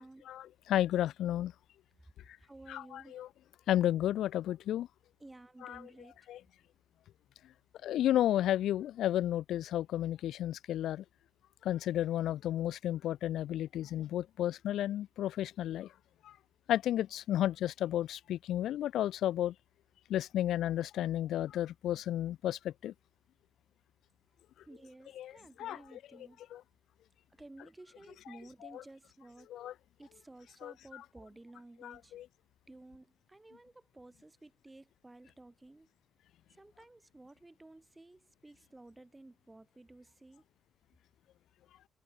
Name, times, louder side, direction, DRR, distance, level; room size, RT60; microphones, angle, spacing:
voice 1, 0.3-1.5 2.7-3.3 3.7-4.9 5.6-5.9 6.3-6.4 7.8-11.0 11.6-15.9 16.2-16.3 16.7-19.5 20.1-22.9 25.1-25.3 25.6-26.0 26.5-26.6 28.7-28.8 29.5-29.7 30.6-31.0 31.8-32.3, left 12 dB, 80° left, 1.1 m, -32 dB
voice 2, 2.4-3.2 5.2-6.1 24.7-26.4 27.3-29.5 30.0-32.1 32.7-35.9 36.6-40.4, right 2 dB, 15° right, 4.2 m, -54 dB
cardioid pair, 90°, 0 cm